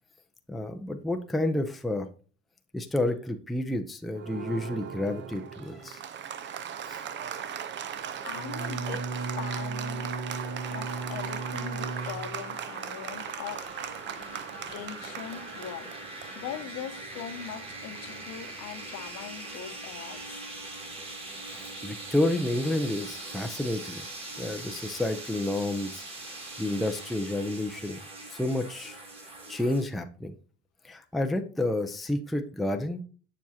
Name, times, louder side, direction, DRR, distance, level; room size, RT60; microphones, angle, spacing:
voice 1, 0.5-2.1 2.7-6.0 6.9-7.0 21.5-24.0 24.4-28.0 28.3-29.0 29.5-30.3 30.8-33.0, left 1 dB, ahead, 0.5 m, -30 dB
Applause, 4.1-18.5, right 8 dB, 40° right, 0.7 m, -39 dB
voice 2, 8.2-10.1 10.7-13.6 14.7-15.9 16.3-20.4, left 9 dB, 55° left, 1.0 m, -41 dB
Bowed string instrument, 8.3-12.6, right 3 dB, 70° right, 1.4 m, -35 dB
sound 1, 10.3-29.8, right 2 dB, 20° right, 2.1 m, -42 dB
7.1 x 6.1 x 2.8 m
supercardioid pair, 110°, 29 cm